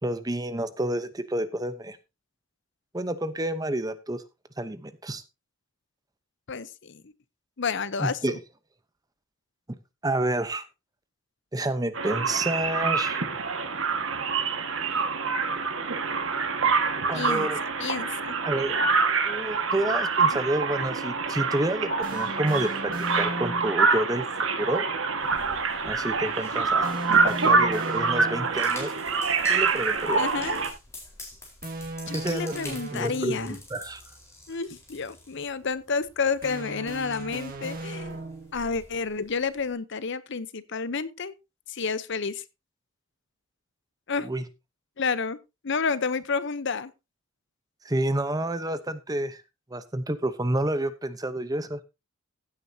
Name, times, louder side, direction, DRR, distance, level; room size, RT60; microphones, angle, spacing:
voice 1, 0.0-2.0 2.9-4.2 4.6-5.2 8.0-8.4 10.0-10.6 11.5-13.2 17.1-17.6 18.4-18.8 19.3-24.3 24.6-24.9 25.8-26.9 27.2-28.9 29.5-30.2 32.1-34.0 44.2-44.4 47.8-49.4 49.7-51.8, right 1 dB, 15° right, 0.8 m, -29 dB
voice 2, 6.5-7.1 7.6-8.4 17.1-17.5 17.8-18.4 30.2-30.6 32.1-33.6 34.5-38.2 38.5-41.3 41.7-42.4 44.1-44.3 45.0-45.4 45.6-46.9, left 5 dB, 55° left, 0.8 m, -30 dB
sound 1, 11.9-30.7, right 4 dB, 65° right, 1.7 m, -26 dB
sound 2, 22.0-23.8 26.8-28.7 31.6-33.6 36.4-38.6, right 1 dB, 40° right, 2.0 m, -36 dB
sound 3, 25.2-39.7, left 2 dB, 15° left, 4.2 m, -47 dB
15.5 x 8.7 x 2.8 m
head